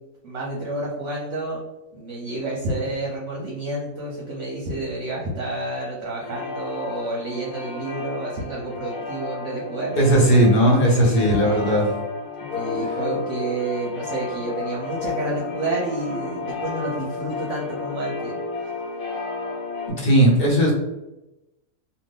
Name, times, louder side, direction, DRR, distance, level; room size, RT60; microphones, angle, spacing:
voice 1, 0.2-1.6 1.9-9.9 10.8-11.8 12.5-18.4, right 2 dB, 60° right, -4 dB, 0.9 m, -29 dB
sound 1, 6.2-19.9, left 4 dB, 80° left, 1.4 m, -32 dB
voice 2, 9.9-11.9 20.0-20.7, right 1 dB, 45° left, -3 dB, 1.0 m, -17 dB
2.7 x 2.5 x 3.5 m, 0.97 s
omnidirectional pair, 1.6 m